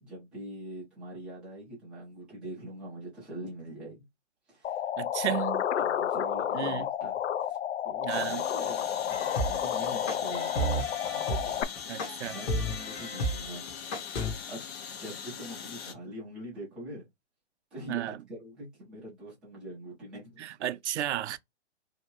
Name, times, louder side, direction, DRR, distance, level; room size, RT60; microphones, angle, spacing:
voice 1, 0.0-4.0 4.5-4.8 5.2-5.5 5.7-7.6 7.8-11.5 12.2-13.6 14.0-14.6 14.9-17.1 17.7-20.4, right 1 dB, 5° right, 0.3 m, -43 dB
sound 1, 4.6-11.6, left 10 dB, 75° left, 0.5 m, -31 dB
voice 2, 5.0-5.6 6.5-6.9 8.0-8.4 11.9-12.4 17.9-18.2 20.4-21.4, right 12 dB, 75° right, 0.5 m, -33 dB
sound 2, 8.1-15.9, left 7 dB, 60° left, 0.8 m, -41 dB
sound 3, 9.1-14.3, right 1 dB, 25° left, 0.9 m, -32 dB
2.7 x 2.6 x 2.9 m
hypercardioid pair, 140°, 35 cm